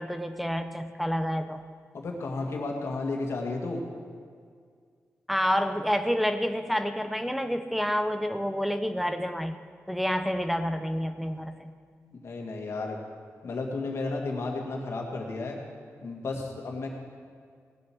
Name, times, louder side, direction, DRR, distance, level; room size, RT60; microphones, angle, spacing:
voice 1, 0.0-1.6 5.3-9.6 9.9-11.7, equal, ahead, 8 dB, 0.5 m, -28 dB
voice 2, 1.9-3.8 12.1-13.0 13.4-15.6 16.0-16.9, left 3 dB, 60° left, 1 dB, 2.1 m, -33 dB
17.5 x 8.0 x 6.2 m, 2.1 s
wide cardioid pair, 145°, 5 cm